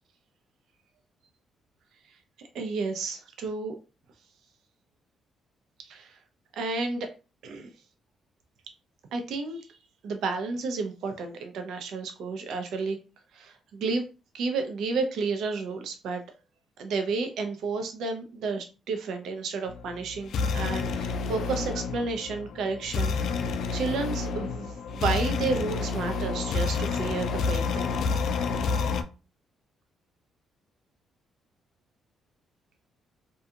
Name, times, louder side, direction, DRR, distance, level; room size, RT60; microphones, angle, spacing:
voice 1, 2.4-3.8 5.8-6.2 6.5-7.1 7.4-7.7 9.1-9.7 10.0-13.0 13.3-14.0 14.3-16.2 16.8-23.2 23.4-27.9, right 4 dB, 75° right, 6 dB, 0.4 m, -31 dB
sound 1, 19.7-29.0, left 4 dB, 70° left, 0.3 m, -29 dB
2.4 x 2.3 x 2.7 m, 0.32 s
cardioid pair, 90°, 0 cm